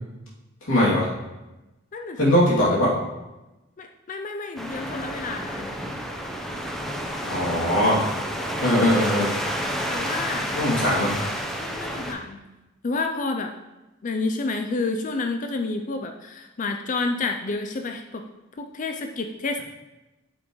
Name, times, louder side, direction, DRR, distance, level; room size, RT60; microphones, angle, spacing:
voice 1, 0.7-1.1 2.2-2.9 7.3-8.0 8.6-9.3 10.5-11.1, left 1 dB, 75° left, -6 dB, 2.7 m, -20 dB
voice 2, 1.9-2.3 3.8-5.8 9.9-10.6 10.9-11.3 11.6-12.4 12.8-13.5 14.0-18.2 18.6-19.6, left 3 dB, 40° left, 5 dB, 0.5 m, -30 dB
sound 1, 4.6-12.1, equal, ahead, 0.8 m, -30 dB
9.1 x 7.5 x 3.1 m, 1.0 s
head